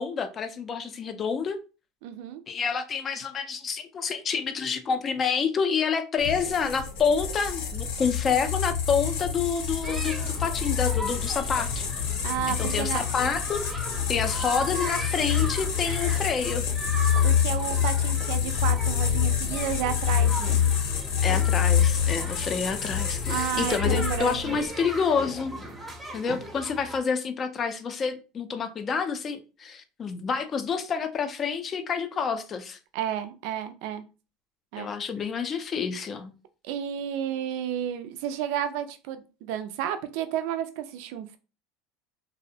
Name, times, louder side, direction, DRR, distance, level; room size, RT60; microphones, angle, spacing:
voice 1, 0.0-1.6 2.5-11.9 12.5-13.6 14.1-16.7 21.2-25.5 26.1-32.8 34.8-36.3, left 6 dB, 30° left, 0.4 m, -28 dB
voice 2, 2.0-2.4 12.2-13.0 17.2-20.6 23.3-24.6 32.9-34.0 34.7-34.9 36.6-41.4, right 10 dB, 70° right, 0.4 m, -31 dB
sound 1, 6.2-24.6, left 8 dB, 75° left, 0.6 m, -27 dB
sound 2, 9.8-27.0, right 1 dB, 10° right, 0.6 m, -38 dB
2.5 x 2.0 x 2.7 m
supercardioid pair, 125°, 0 cm